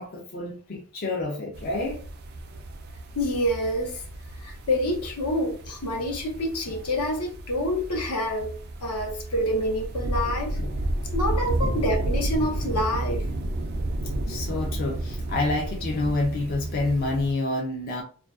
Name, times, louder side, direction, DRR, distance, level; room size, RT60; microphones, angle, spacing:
voice 1, 0.0-2.1 10.6-10.8 11.6-11.7 14.3-18.0, left 2 dB, 45° left, 0.5 m, -28 dB
sound 1, 1.5-17.3, right 1 dB, 45° right, 0.3 m, -32 dB
voice 2, 3.1-4.0 4.4-8.6 8.8-10.6 11.1-13.3, left 1 dB, 85° left, 0.8 m, -27 dB
2.4 x 2.2 x 2.3 m
head